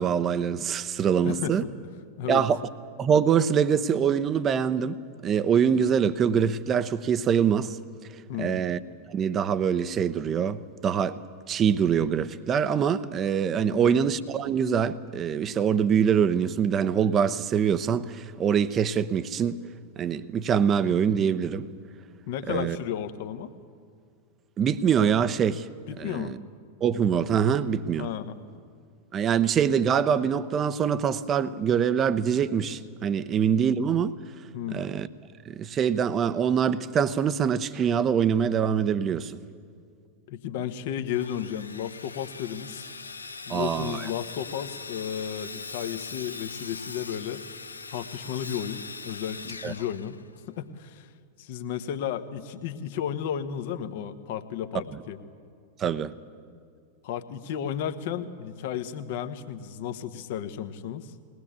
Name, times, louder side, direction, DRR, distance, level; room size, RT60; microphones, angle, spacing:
voice 1, 0.0-1.6 2.3-2.6 3.0-5.0 5.2-7.8 8.4-8.8 9.1-11.2 11.5-19.6 20.0-21.7 22.5-22.8 24.6-25.7 26.0-26.4 26.8-28.1 29.1-34.1 34.7-35.1 35.5-39.3 43.5-44.1 49.6-49.7 55.8-56.1, right 7 dB, 25° right, 0.8 m, -24 dB
voice 2, 1.2-1.7 2.2-2.4 8.3-8.6 13.7-13.9 22.3-23.5 25.9-26.4 28.0-28.4 34.5-34.8 40.3-42.9 43.5-47.5 47.9-50.2 50.5-51.1 51.4-55.2 57.0-61.1, left 9 dB, 50° left, 1.2 m, -33 dB
Sawing, 41.1-50.6, left 4 dB, 75° left, 0.6 m, -41 dB
21.0 x 19.0 x 8.5 m
figure-of-eight pair, 90°, 0 cm